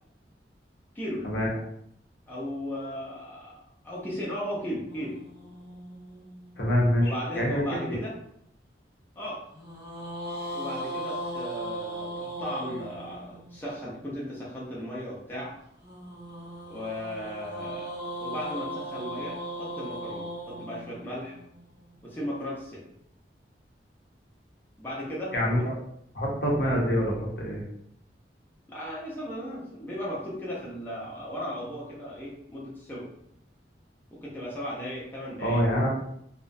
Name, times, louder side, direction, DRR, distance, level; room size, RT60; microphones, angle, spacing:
voice 1, 0.9-1.3 2.3-5.2 7.0-8.2 9.2-9.4 10.5-15.5 16.7-17.9 18.2-21.4 22.0-22.8 24.8-25.6 28.7-33.1 34.2-35.6, equal, 10° left, -6 dB, 0.5 m, -36 dB
sound 1, 4.9-7.3 9.5-13.7 15.8-22.0, equal, 25° right, 0.7 m, -38 dB
voice 2, 6.6-7.7 25.3-25.7 26.1-27.6 35.4-35.9, equal, 65° left, -2 dB, 0.6 m, -25 dB
2.3 x 2.1 x 2.5 m, 0.73 s
head